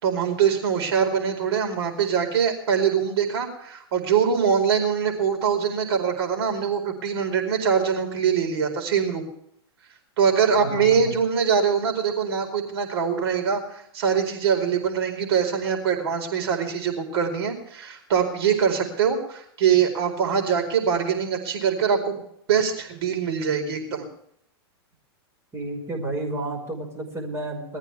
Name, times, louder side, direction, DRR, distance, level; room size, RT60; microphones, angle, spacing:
voice 1, 0.0-9.3 10.2-22.2 22.5-24.0, right 7 dB, 70° right, 3 dB, 4.6 m, -23 dB
voice 2, 10.5-11.1 25.5-27.8, right 2 dB, 20° right, 2 dB, 5.3 m, -31 dB
22.0 x 14.5 x 3.4 m, 0.69 s
hypercardioid pair, 125°, 14 cm